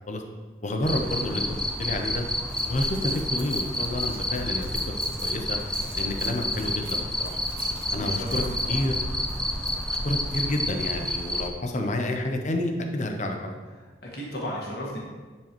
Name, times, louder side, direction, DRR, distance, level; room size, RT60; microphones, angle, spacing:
voice 1, 0.6-2.2 2.7-4.7 5.0-5.6 6.0-7.4 7.9-8.9 10.0-13.5, left 1 dB, 40° left, 4 dB, 0.6 m, -29 dB
Cricket, 0.8-11.5, left 1 dB, 5° left, 0.4 m, -29 dB
Crumpling crinkling, 2.5-5.3 5.6-10.0, right 4 dB, 30° right, 1.7 m, -48 dB
voice 2, 8.0-8.9 11.5-12.2 13.8-15.0, equal, 55° left, -3 dB, 1.6 m, -36 dB
10.5 x 4.6 x 3.0 m, 1.3 s
head